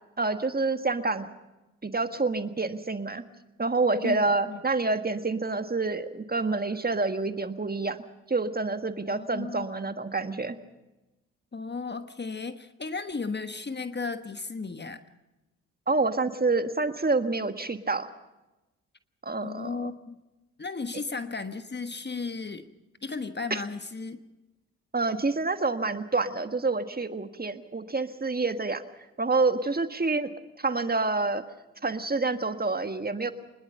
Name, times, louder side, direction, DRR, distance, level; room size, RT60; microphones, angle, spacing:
voice 1, 0.2-1.3 1.8-3.2 3.6-8.0 8.3-10.6 15.9-18.1 19.2-19.9 23.5-23.6 24.9-28.8 29.2-30.3 30.6-31.4 31.8-33.3, right 3 dB, 25° right, 9 dB, 1.6 m, -27 dB
voice 2, 4.0-4.6 9.1-9.7 11.5-15.0 19.4-20.2 20.6-22.7 23.0-24.2, left 4 dB, 25° left, 10 dB, 1.3 m, -35 dB
25.0 x 20.5 x 5.7 m, 1.0 s
hypercardioid pair, 40°, 39 cm